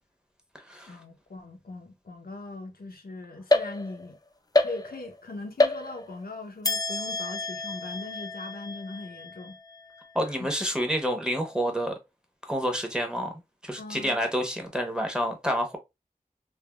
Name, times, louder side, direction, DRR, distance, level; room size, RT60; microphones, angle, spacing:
voice 1, 0.9-4.2 4.6-9.6 10.2-10.5 13.8-14.3, left 2 dB, 90° left, 0.6 m, -40 dB
sound 1, 3.5-4.2 4.5-5.2 5.6-6.3 6.6-10.1, left 2 dB, 25° left, 0.3 m, -28 dB
voice 2, 10.1-11.9 12.5-13.3 13.6-15.8, equal, 5° right, 0.8 m, -28 dB
3.3 x 2.2 x 2.2 m
wide cardioid pair, 45°, 15 cm